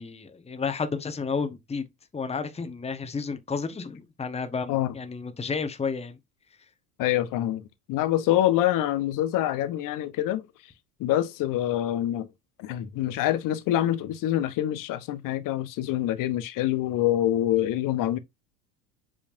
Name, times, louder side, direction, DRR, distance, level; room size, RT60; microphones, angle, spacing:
voice 1, 0.0-1.8 2.1-6.2, left 5 dB, 15° left, 1.2 m, -31 dB
voice 2, 7.0-10.5 11.0-12.3 12.6-18.2, left 13 dB, 45° left, 0.9 m, -26 dB
7.5 x 5.1 x 2.6 m
figure-of-eight pair, 70°, 46 cm